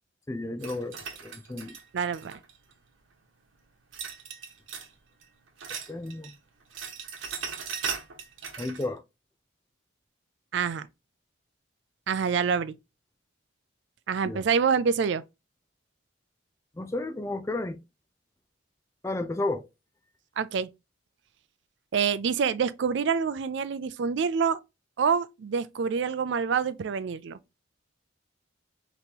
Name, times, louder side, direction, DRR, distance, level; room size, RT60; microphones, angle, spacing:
voice 1, 0.3-1.7 5.9-6.3 8.6-9.0 14.3-14.4 16.8-17.8 19.0-19.7, left 2 dB, 15° left, 0.4 m, -32 dB
sound 1, 0.6-2.7 3.9-4.9 5.2-6.4 6.6-8.9, right 6 dB, 85° right, 1.0 m, -38 dB
voice 2, 1.9-2.3 10.5-10.9 12.1-12.7 14.1-15.2 20.4-20.7 21.9-24.6 25.0-27.4, right 6 dB, 65° right, 0.4 m, -26 dB
5.1 x 3.0 x 2.8 m
head